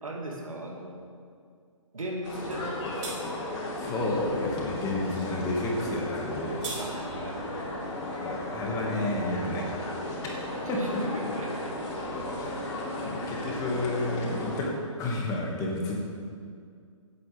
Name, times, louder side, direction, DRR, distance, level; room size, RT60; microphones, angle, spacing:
voice 1, 0.0-1.0 1.9-3.3 6.8-7.7 10.6-11.8 13.5-13.8, right 1 dB, 80° right, -1 dB, 2.0 m, -38 dB
sound 1, 2.2-14.6, left 1 dB, 50° left, 3.1 m, -35 dB
sound 2, 2.5-2.7 3.0-3.2 6.2-6.8, right 3 dB, 60° right, 3.0 m, -37 dB
voice 2, 3.8-6.7 8.2-9.7 10.7-10.8 12.4-14.7 15.0-16.0, left 2 dB, 20° left, -2 dB, 1.8 m, -31 dB
15.0 x 8.3 x 3.4 m, 2.2 s
figure-of-eight pair, 135°, 17 cm